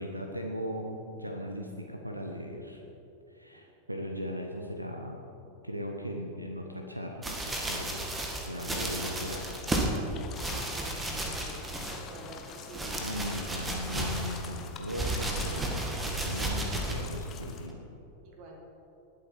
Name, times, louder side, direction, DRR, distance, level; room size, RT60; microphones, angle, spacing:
voice 1, 0.0-2.8 3.3-5.2 5.6-8.0 8.4-9.7 13.0-17.8, equal, 85° right, 3 dB, 0.9 m, -38 dB
sound 1, 7.2-10.0 10.3-12.2 12.5-14.5 14.9-17.1 17.7-17.8, right 1 dB, 10° right, 1.7 m, -33 dB
sound 2, 8.5-17.7, left 7 dB, 30° left, 1.0 m, -46 dB
voice 2, 10.5-13.0 18.2-18.6, right 1 dB, 40° right, 1 dB, 2.0 m, -48 dB
20.0 x 7.8 x 4.6 m, 2.9 s
figure-of-eight pair, 90°, 0 cm